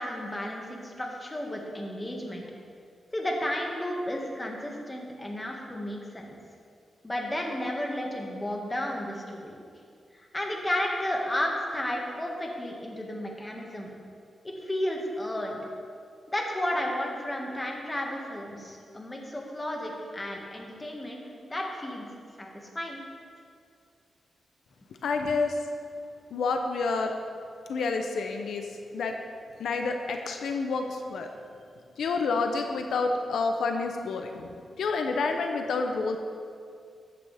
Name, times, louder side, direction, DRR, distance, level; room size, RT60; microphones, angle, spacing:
voice 1, 0.0-2.4 3.1-6.4 7.0-9.6 10.1-13.9 14.4-15.6 16.3-21.2 21.5-22.1 22.4-23.0, left 1 dB, 20° left, 0 dB, 1.8 m, -33 dB
voice 2, 25.0-25.6 26.3-27.1 27.7-28.7 28.9-29.2 29.6-31.3 32.0-36.2, left 4 dB, 90° left, 4 dB, 0.7 m, -29 dB
14.0 x 8.6 x 3.5 m, 2.3 s
cardioid pair, 85°, 0 cm